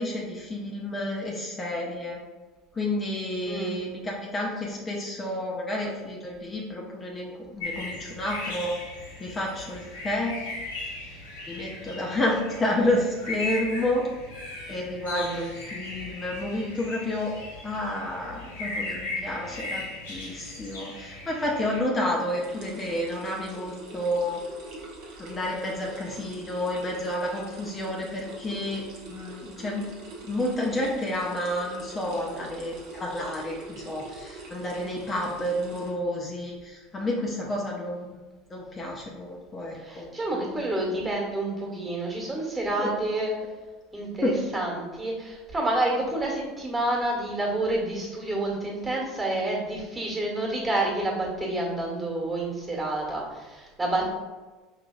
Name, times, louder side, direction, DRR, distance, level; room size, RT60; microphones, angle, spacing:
voice 1, 0.0-2.2 2.7-8.7 9.2-10.4 11.5-14.1 14.7-17.4 17.6-24.4 25.2-29.9 30.2-38.1 38.5-40.1 40.3-40.7 42.8-42.9 44.2-44.4, left 1 dB, 25° left, -2 dB, 0.6 m, -30 dB
sound 1, 7.6-21.8, left 2 dB, 75° left, 1.0 m, -37 dB
voice 2, 15.1-15.5 39.7-43.3 43.9-54.1, right 2 dB, 20° right, -2 dB, 1.3 m, -29 dB
sound 2, 22.0-35.9, right 2 dB, 55° right, 0.9 m, -44 dB
5.0 x 2.8 x 2.3 m, 1.3 s
figure-of-eight pair, 70°, 0 cm